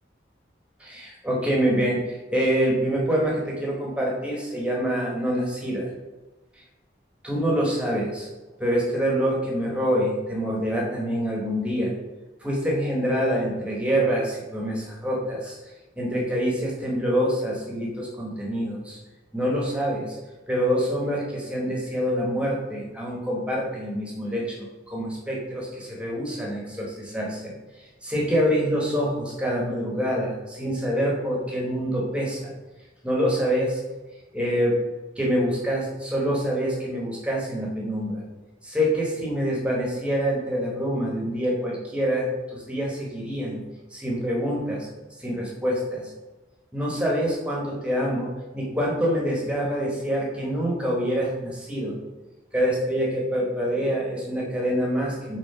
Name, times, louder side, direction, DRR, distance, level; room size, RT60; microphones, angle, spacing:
voice 1, 0.8-5.9 7.2-8.3 8.6-11.9 12.4-15.6 16.0-19.0 19.3-20.2 20.5-24.6 24.9-27.5 28.0-32.5 33.0-33.8 34.3-34.8 35.2-38.2 38.6-43.6 43.9-44.9 45.2-46.1 46.7-52.0 52.5-55.4, equal, 5° right, -3 dB, 1.5 m, -26 dB
5.1 x 4.3 x 5.0 m, 1.1 s
head